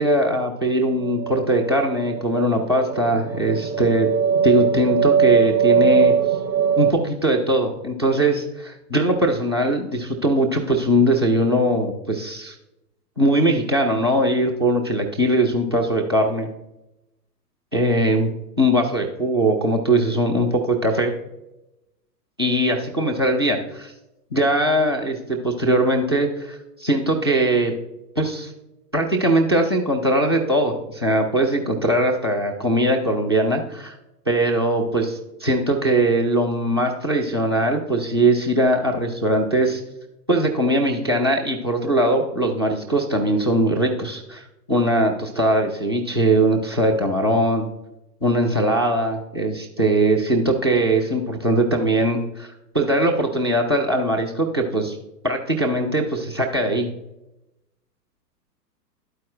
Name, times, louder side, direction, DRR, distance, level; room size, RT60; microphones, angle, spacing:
voice 1, 0.0-4.1 4.4-6.1 6.8-12.6 13.2-16.5 17.7-18.3 18.6-21.1 22.4-23.9 24.3-27.7 28.2-28.5 28.9-33.9 34.3-39.8 40.3-47.7 48.2-55.0 55.2-56.9, right 1 dB, 20° right, 0 dB, 0.3 m, -21 dB
sound 1, 1.0-6.9, right 7 dB, 90° right, 0.9 m, -21 dB
12.0 x 4.5 x 2.5 m, 0.92 s
figure-of-eight pair, 110°, 50 cm